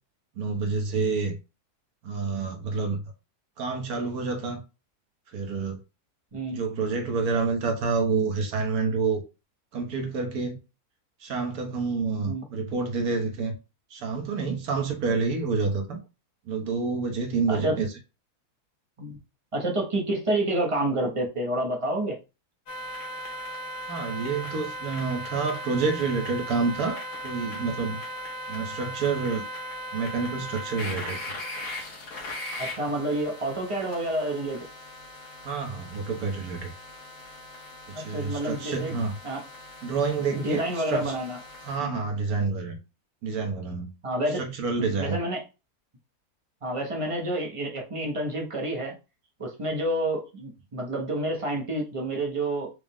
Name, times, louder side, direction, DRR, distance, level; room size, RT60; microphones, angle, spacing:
voice 1, 0.4-1.3 2.0-3.0 3.6-4.6 5.3-5.8 6.5-9.2 9.7-10.6 11.2-13.5 13.9-16.0 16.5-17.9 23.9-28.0 28.5-29.4 29.9-31.2 35.4-36.7 38.0-39.1 39.8-41.1 41.7-42.8 43.2-43.9 44.4-45.2, right 4 dB, 75° right, 1.4 m, -28 dB
voice 2, 6.3-6.6 12.2-12.5 17.5-17.8 19.0-19.2 19.5-22.2 32.6-34.6 37.9-39.4 40.2-41.4 41.8-42.0 44.0-44.4 44.8-45.4 46.6-49.0 49.4-52.7, right 1 dB, 35° right, 0.5 m, -29 dB
sound 1, 22.7-41.8, equal, 85° left, 1.6 m, -38 dB
4.8 x 2.1 x 3.4 m
omnidirectional pair, 1.7 m